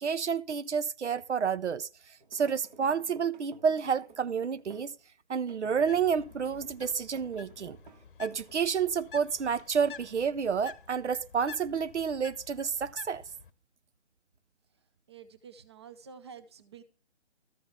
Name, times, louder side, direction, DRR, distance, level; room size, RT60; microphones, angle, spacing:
voice 1, 0.0-1.9 2.3-4.9 5.3-7.8 8.2-13.2, right 6 dB, 90° right, 0.6 m, -29 dB
sound 1, 2.2-5.0 5.5-8.6, right 4 dB, 45° right, 1.5 m, -54 dB
Bird, 5.7-13.5, left 7 dB, 50° left, 0.8 m, -50 dB
voice 2, 15.1-16.8, right 6 dB, 25° right, 0.5 m, -49 dB
13.0 x 6.2 x 3.5 m
figure-of-eight pair, 145°, 34 cm